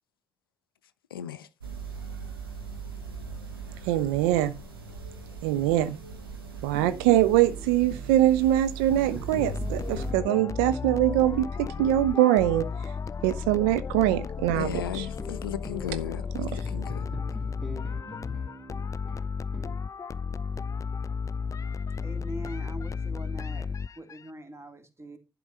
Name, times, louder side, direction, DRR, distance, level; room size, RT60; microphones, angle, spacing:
voice 1, 1.1-1.5 14.5-17.1, left 9 dB, 80° left, 0.5 m, -36 dB
sound 1, 1.6-10.1, right 6 dB, 85° right, 1.7 m, -40 dB
voice 2, 3.9-4.5 5.4-6.0 6.6-12.7 13.2-15.0 16.4-16.5, right 13 dB, 70° right, 0.6 m, -23 dB
sound 2, 6.7-8.2 8.9-12.1 14.5-15.9 16.6-19.8, equal, ahead, 2.5 m, -44 dB
sound 3, 9.3-24.2, left 5 dB, 25° left, 0.4 m, -34 dB
voice 3, 22.0-25.2, right 1 dB, 20° right, 2.2 m, -42 dB
11.5 x 4.6 x 5.3 m
figure-of-eight pair, 40°, 12 cm